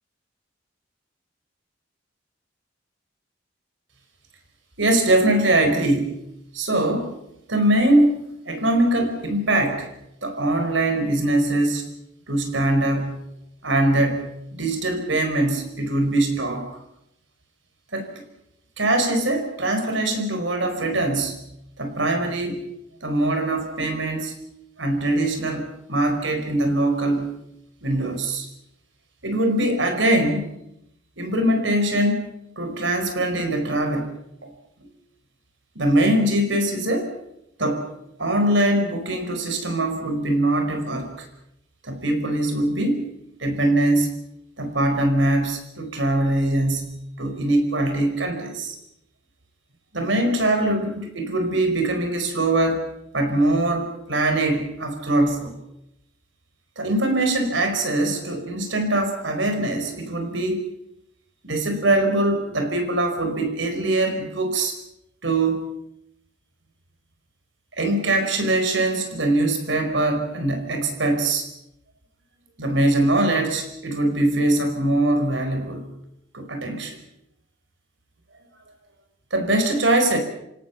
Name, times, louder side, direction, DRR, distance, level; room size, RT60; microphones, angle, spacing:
voice 1, 4.8-6.2 6.5-7.1 7.5-8.2 8.4-9.9 10.2-11.8 12.3-13.2 13.6-16.6 17.9-18.1 18.8-21.4 21.8-22.6 23.0-24.3 24.8-27.3 27.8-28.5 29.2-30.5 31.2-32.3 32.6-34.1 34.4-34.5 35.7-37.1 37.6-37.9 38.2-41.3 41.8-43.1 43.4-44.1 44.6-48.7 49.9-52.9 53.1-55.6 56.8-60.6 61.4-64.8 65.2-65.6 67.8-71.5 72.6-75.8 76.3-77.0 79.3-80.2, right 1 dB, 70° right, 6 dB, 4.9 m, -22 dB
28.0 x 17.5 x 7.2 m, 0.81 s
head